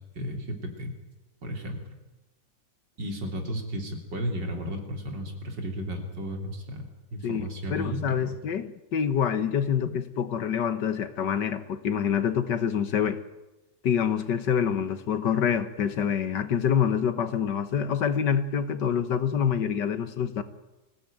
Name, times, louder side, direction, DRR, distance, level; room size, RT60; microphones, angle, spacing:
voice 1, 0.2-0.9 1.4-1.8 3.0-6.8 7.1-8.4, equal, 70° right, 3 dB, 4.1 m, -33 dB
voice 2, 7.2-13.2 13.8-20.4, left 8 dB, 70° left, 12 dB, 1.8 m, -26 dB
25.0 x 16.0 x 9.1 m, 1.1 s
omnidirectional pair, 2.0 m